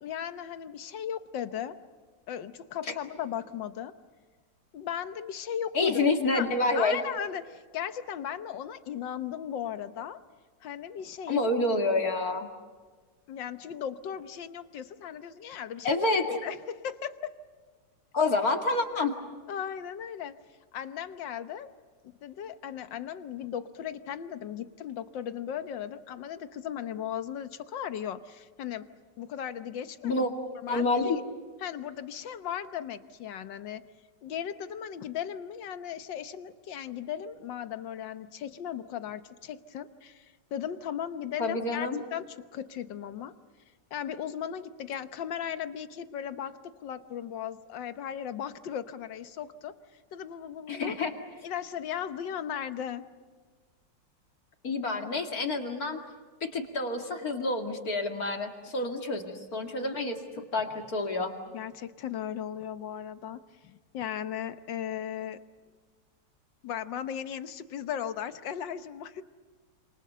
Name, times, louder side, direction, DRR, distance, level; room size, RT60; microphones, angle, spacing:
voice 1, 0.0-1.8 2.3-3.9 4.7-6.0 6.4-10.2 10.6-11.5 13.3-17.3 19.5-20.4 20.7-21.7 22.2-28.9 29.2-30.3 30.6-30.9 31.6-33.8 34.2-43.4 43.9-49.7 50.1-51.0 51.4-53.0 59.8-60.0 60.4-60.5 61.5-65.4 66.6-69.2, left 9 dB, 80° left, 11 dB, 1.7 m, -37 dB
voice 2, 5.7-7.0 11.3-12.5 15.8-16.3 18.1-19.1 30.0-30.3 30.7-31.2 41.4-42.0 50.7-51.1 54.6-56.0 56.4-60.2 60.5-61.3, left 3 dB, 50° left, 4 dB, 2.7 m, -28 dB
28.0 x 27.0 x 6.8 m, 1.5 s
omnidirectional pair, 2.0 m